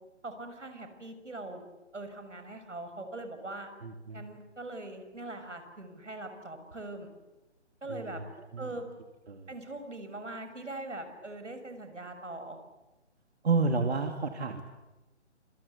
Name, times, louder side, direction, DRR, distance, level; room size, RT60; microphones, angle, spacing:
voice 1, 0.2-1.6 1.9-3.7 4.1-7.1 7.8-8.2 8.6-8.8 9.5-12.6, right 2 dB, 85° right, 7 dB, 6.3 m, -41 dB
voice 2, 3.8-4.2 7.9-8.2 8.5-8.7 9.3-9.5 13.4-14.6, right 4 dB, 65° right, 5 dB, 2.7 m, -30 dB
27.5 x 24.5 x 8.3 m, 1.0 s
figure-of-eight pair, 150°, 35 cm